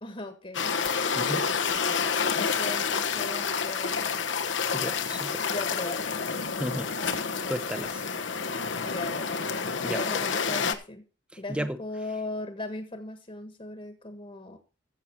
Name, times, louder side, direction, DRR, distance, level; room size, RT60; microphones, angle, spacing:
voice 1, 0.0-1.0 1.7-2.1 2.4-4.4 5.5-6.1 8.8-9.4 9.9-11.0 11.4-14.6, left 2 dB, 30° left, 7 dB, 1.5 m, -38 dB
sound 1, 0.5-10.7, left 6 dB, 75° left, 1.2 m, -29 dB
voice 2, 1.1-1.4 4.7-5.4 6.6-7.2 7.5-8.0 9.8-10.0 11.3-11.8, equal, 5° right, 11 dB, 0.9 m, -34 dB
14.5 x 7.8 x 4.6 m, 0.34 s
head